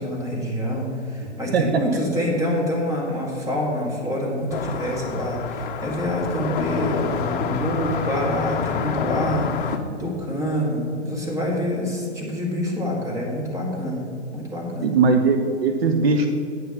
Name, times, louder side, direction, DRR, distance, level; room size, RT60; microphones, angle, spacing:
voice 1, 0.0-14.1 14.3-15.0, equal, 10° right, -2 dB, 1.7 m, -26 dB
voice 2, 1.2-1.8 14.8-16.3, right 4 dB, 55° right, 5 dB, 0.8 m, -20 dB
sound 1, 4.5-9.8, left 6 dB, 45° left, 0.7 m, -28 dB
9.2 x 5.9 x 5.8 m, 2.5 s
figure-of-eight pair, 125°, 36 cm